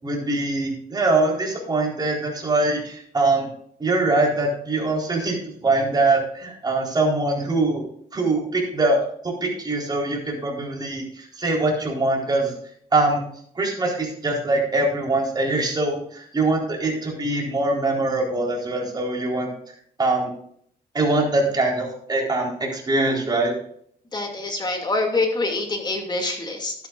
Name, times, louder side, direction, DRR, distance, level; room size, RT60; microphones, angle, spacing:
voice 1, 0.0-3.5 3.8-7.8 8.1-12.5 12.9-13.2 13.5-19.5 20.0-20.3 20.9-23.5, right 2 dB, 25° right, -1 dB, 4.1 m, -23 dB
voice 2, 24.1-26.7, left 2 dB, 25° left, 2 dB, 2.6 m, -25 dB
13.0 x 11.5 x 2.6 m, 0.63 s
cardioid pair, 120°, 16 cm